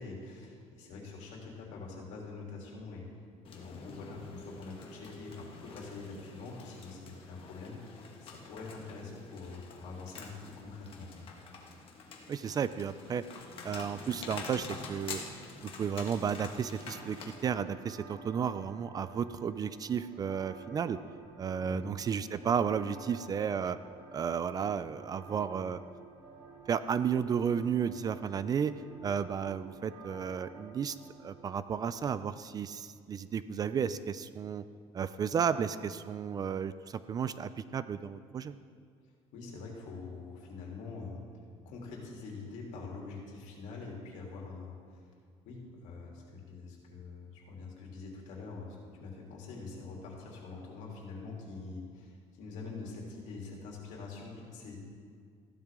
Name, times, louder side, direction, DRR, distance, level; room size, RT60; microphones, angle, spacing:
voice 1, 0.0-3.1 3.5-11.3 21.6-21.9 39.3-41.2 41.6-45.1 45.4-54.8, left 3 dB, 80° left, -2 dB, 3.0 m, -45 dB
sound 1, 3.4-17.4, left 4 dB, 45° left, 1.4 m, -47 dB
voice 2, 12.3-13.2 13.6-15.2 15.6-21.0 21.4-23.8 24.1-25.8 26.7-28.7 29.0-34.6 34.9-38.6, right 7 dB, 30° right, 14 dB, 0.4 m, -33 dB
sound 2, 16.2-32.2, right 4 dB, 60° right, 2.0 m, -52 dB
15.0 x 12.0 x 3.6 m, 2.2 s
cardioid pair, 150°, 12 cm